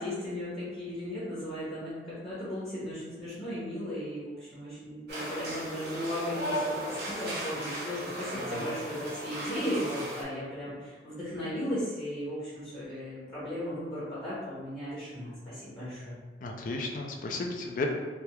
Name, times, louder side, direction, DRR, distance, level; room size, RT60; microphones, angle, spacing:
voice 1, 0.0-16.1, equal, 30° left, -12 dB, 0.9 m, -36 dB
sound 1, 5.1-10.2, right 1 dB, 60° right, 0.7 m, -36 dB
voice 2, 8.3-8.7 16.4-17.9, left 3 dB, 45° left, 1 dB, 0.4 m, -34 dB
3.3 x 2.3 x 2.9 m, 1.4 s
head